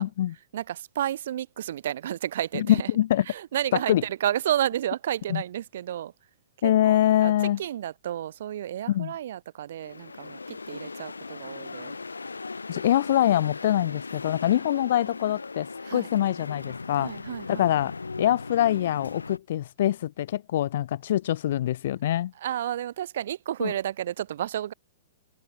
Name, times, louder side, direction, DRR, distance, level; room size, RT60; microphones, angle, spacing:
voice 1, 0.0-0.3 2.5-3.3 3.7-4.0 5.3-5.4 6.6-7.6 8.9-9.1 12.7-17.1 17.5-17.9 18.2-22.3 23.6-23.7, left 12 dB, 60° left, 0.4 m, -24 dB
voice 2, 0.5-2.9 3.3-6.1 6.6-7.3 7.6-12.0 15.8-16.1 17.0-17.6 22.4-24.7, right 11 dB, 60° right, 2.2 m, -31 dB
sound 1, 9.8-19.4, left 4 dB, 85° left, 1.4 m, -38 dB
figure-of-eight pair, 115°, 0 cm